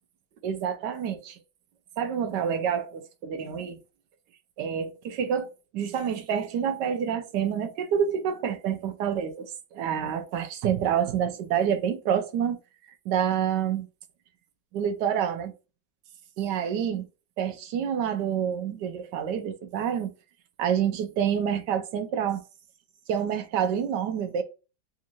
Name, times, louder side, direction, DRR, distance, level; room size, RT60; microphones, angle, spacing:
voice 1, 0.4-1.4 2.0-3.8 4.6-12.6 13.1-13.9 14.7-15.5 16.4-17.1 17.4-20.1 20.6-22.4 23.1-24.4, right 8 dB, 85° right, 1.2 m, -28 dB
3.6 x 2.5 x 2.9 m
omnidirectional pair, 1.8 m